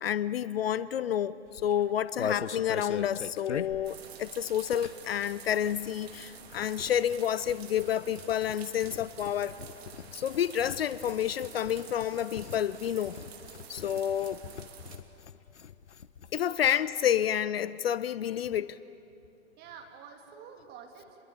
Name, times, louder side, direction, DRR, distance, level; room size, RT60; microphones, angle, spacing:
voice 1, 0.0-1.3 1.6-9.6 10.1-13.2 13.7-14.4 16.3-18.8, left 10 dB, 55° left, 0.6 m, -29 dB
sound 1, 1.5-5.2 5.4-16.4 16.6-16.7 16.9-17.3, left 7 dB, 70° left, 1.0 m, -41 dB
sound 2, 3.8-15.0, right 7 dB, 55° right, 2.9 m, -49 dB
voice 2, 16.4-16.7 19.6-21.2, right 7 dB, 25° right, 3.0 m, -49 dB
27.5 x 21.5 x 8.7 m
figure-of-eight pair, 115°, 36 cm